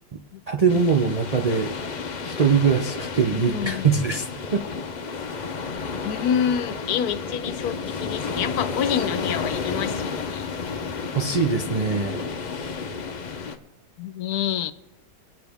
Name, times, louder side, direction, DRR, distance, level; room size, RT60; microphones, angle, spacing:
voice 1, 0.5-1.7 2.2-4.6 11.1-12.3, right 5 dB, 65° right, 0.3 m, -22 dB
sound 1, 0.7-13.6, left 5 dB, 45° left, 0.6 m, -31 dB
voice 2, 3.5-3.9 6.0-10.5 14.0-14.7, left 8 dB, 80° left, 1.2 m, -27 dB
23.0 x 8.4 x 3.5 m
omnidirectional pair, 1.6 m